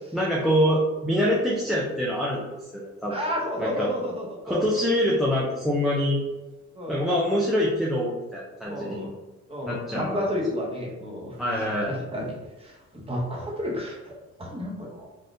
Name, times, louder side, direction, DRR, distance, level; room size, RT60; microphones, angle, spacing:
voice 1, 0.1-2.4 2.7-3.2 3.6-3.9 4.4-6.2 6.9-9.0 9.6-10.3 11.4-11.9, equal, ahead, -4 dB, 0.5 m, -25 dB
voice 2, 3.1-4.6 6.7-7.0 8.6-9.1 9.5-11.4 11.8-12.3 12.6-15.1, equal, 20° right, -2 dB, 1.0 m, -31 dB
3.4 x 2.3 x 2.7 m, 1.1 s
cardioid pair, 90°, 30 cm